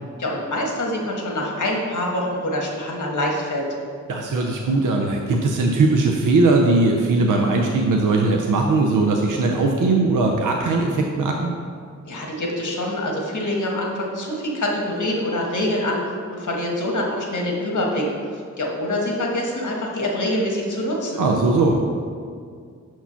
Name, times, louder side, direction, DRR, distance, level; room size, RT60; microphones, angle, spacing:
voice 1, 0.2-3.6 12.0-18.3 18.6-21.2, left 1 dB, 70° left, -1 dB, 1.4 m, -25 dB
voice 2, 4.1-11.5 21.2-21.8, right 3 dB, 85° right, 1 dB, 0.6 m, -19 dB
5.8 x 4.6 x 5.7 m, 2.1 s
cardioid pair, 50°, 31 cm